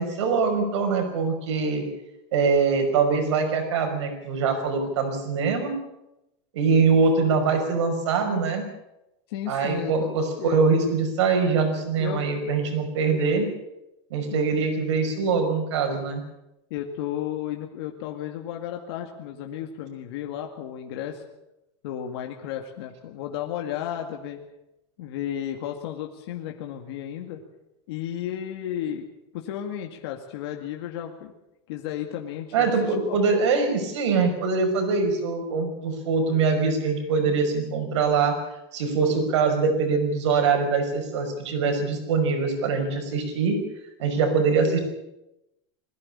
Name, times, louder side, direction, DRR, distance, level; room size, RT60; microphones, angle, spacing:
voice 1, 0.0-1.8 2.3-5.8 6.5-8.6 9.5-13.5 14.1-16.2 32.5-38.4 38.7-43.6 44.0-44.8, right 4 dB, 90° right, 5 dB, 5.5 m, -23 dB
voice 2, 9.3-10.6 12.0-12.3 14.3-14.6 16.7-21.2 21.8-24.4 25.0-27.4 27.9-29.0 29.3-31.3 31.7-32.7 33.1-33.2, left 10 dB, 60° left, 2 dB, 2.2 m, -33 dB
22.0 x 15.0 x 8.8 m, 0.91 s
supercardioid pair, 170°, 15 cm